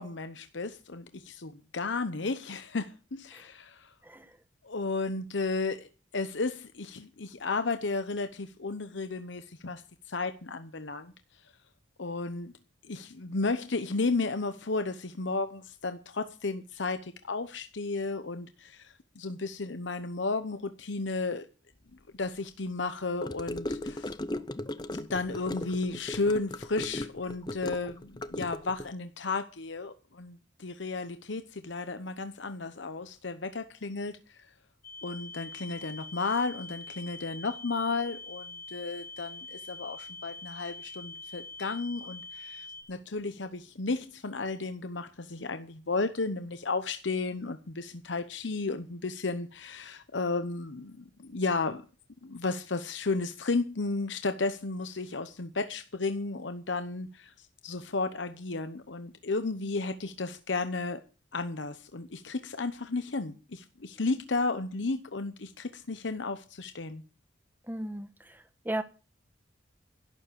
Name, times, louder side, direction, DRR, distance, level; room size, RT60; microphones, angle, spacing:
voice 1, 0.0-3.9 4.6-5.9 6.1-9.8 10.1-11.1 12.0-12.5 12.9-21.5 22.2-24.2 25.0-34.5 35.0-51.8 52.2-61.0 61.3-67.0, left 3 dB, 75° left, 1.0 m, -33 dB
Gurgling / Car passing by / Sink (filling or washing), 23.2-28.9, left 1 dB, 20° left, 0.6 m, -37 dB
sound 1, 34.8-42.8, left 3 dB, 55° left, 2.2 m, -44 dB
voice 2, 67.7-68.8, right 1 dB, 10° right, 1.2 m, -36 dB
12.0 x 11.5 x 6.9 m
head